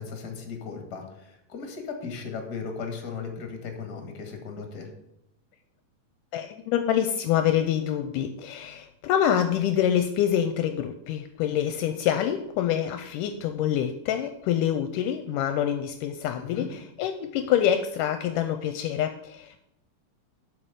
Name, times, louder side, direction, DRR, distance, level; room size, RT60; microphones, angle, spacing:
voice 1, 0.0-4.9 16.4-16.7, left 5 dB, 35° left, 4 dB, 1.9 m, -37 dB
voice 2, 6.3-19.6, left 10 dB, 80° left, 9 dB, 2.1 m, -26 dB
7.6 x 6.3 x 8.0 m, 0.79 s
omnidirectional pair, 3.9 m